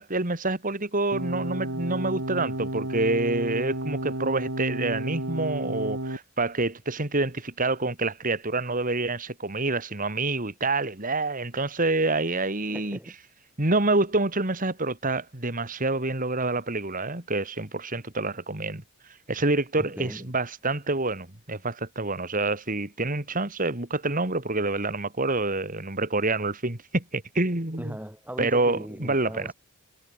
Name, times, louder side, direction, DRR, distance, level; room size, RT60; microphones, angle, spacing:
voice 1, 0.0-13.0 13.6-18.8 19.3-27.9 28.4-29.5, right 2 dB, 40° right, 2.9 m, -27 dB
sound 1, 1.1-6.2, right 1 dB, 70° right, 4.1 m, -32 dB
voice 2, 12.7-13.1 19.8-20.3 27.8-29.5, equal, 10° right, 5.0 m, -38 dB
head